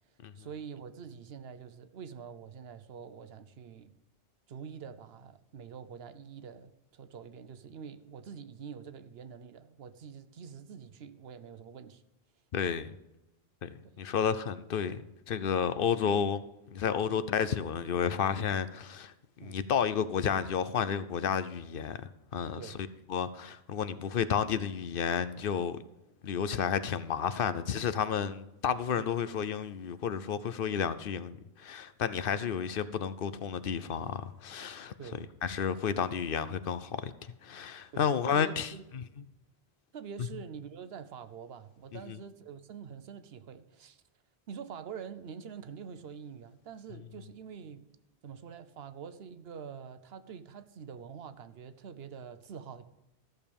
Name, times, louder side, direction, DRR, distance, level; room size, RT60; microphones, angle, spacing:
voice 1, 0.3-3.9 4.5-12.0 13.8-14.0 17.1-17.2 19.4-19.6 22.6-22.8 28.9-29.1 32.3-32.5 35.0-35.3 37.9-38.8 39.9-44.0 44.5-47.9 48.2-52.9, right 7 dB, 75° right, 1.0 m, -46 dB
voice 2, 12.5-12.9 13.6-13.7 14.0-16.4 16.7-19.1 19.4-22.0 22.3-22.7 23.1-25.8 26.2-34.9 35.4-39.0 42.1-42.2, left 7 dB, 65° left, 0.8 m, -31 dB
14.0 x 6.8 x 5.3 m
omnidirectional pair, 1.0 m